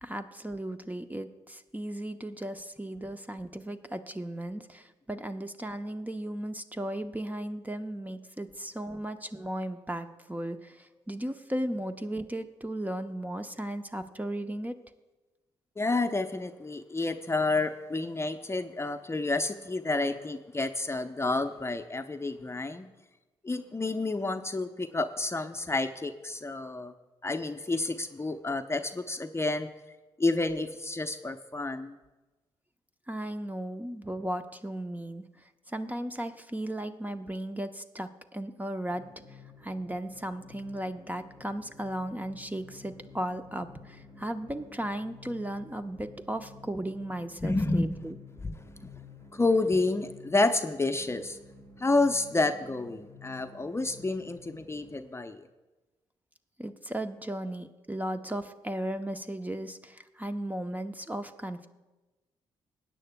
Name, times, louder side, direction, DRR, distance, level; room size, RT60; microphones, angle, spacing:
voice 1, 0.0-14.7 33.1-35.3 35.7-39.0 39.6-48.2 56.6-61.7, right 1 dB, 15° right, 8 dB, 0.7 m, -36 dB
voice 2, 15.8-22.9 23.4-26.9 27.2-29.7 30.2-32.0 47.4-48.0 48.4-48.6 48.8-48.9 49.3-51.4 51.8-55.5, left 2 dB, 20° left, 8 dB, 0.7 m, -29 dB
sound 1, 38.9-55.0, left 3 dB, 75° right, 4.1 m, -52 dB
20.5 x 9.1 x 2.2 m, 1.1 s
hypercardioid pair, 45°, 13 cm